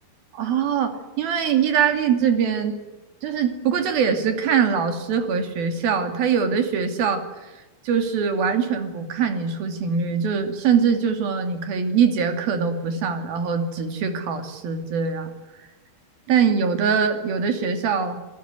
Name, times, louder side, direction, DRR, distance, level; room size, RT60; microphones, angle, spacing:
voice 1, 0.3-2.8 3.2-7.2 7.8-15.3 16.3-18.2, right 6 dB, 75° right, 6 dB, 4.4 m, -22 dB
27.5 x 18.5 x 9.8 m, 1.1 s
omnidirectional pair, 4.4 m